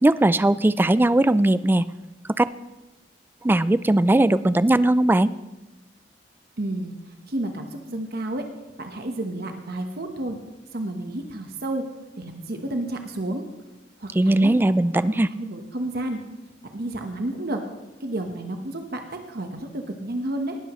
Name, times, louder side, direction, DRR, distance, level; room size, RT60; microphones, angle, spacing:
voice 1, 0.0-1.8 2.4-2.5 3.4-5.3 14.2-15.3, right 1 dB, 10° right, 16 dB, 0.3 m, -19 dB
voice 2, 6.6-6.9 7.3-8.4 8.8-10.4 10.7-11.8 12.2-13.4 14.0-14.5 15.3-16.2 16.7-17.6 18.0-20.6, right 1 dB, 60° right, 5 dB, 1.1 m, -30 dB
18.5 x 12.0 x 3.1 m, 1.0 s
head